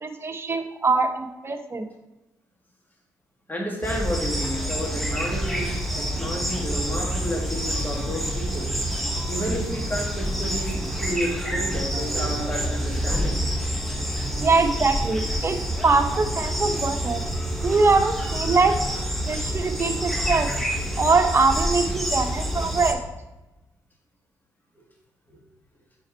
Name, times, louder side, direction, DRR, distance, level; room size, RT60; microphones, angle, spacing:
voice 1, 0.0-1.8 14.4-15.6 15.8-17.2 17.6-18.7 19.3-20.5 21.0-23.0, right 4 dB, 35° right, 5 dB, 1.0 m, -22 dB
voice 2, 3.5-8.7 9.3-13.4 25.3-25.4, equal, 25° left, -1 dB, 2.3 m, -31 dB
sound 1, 3.8-22.9, equal, ahead, 1.2 m, -27 dB
sound 2, 8.5-10.5 11.9-13.5, right 2 dB, 70° right, 0.8 m, -43 dB
5.3 x 4.7 x 4.5 m, 1.0 s
supercardioid pair, 50°, 8 cm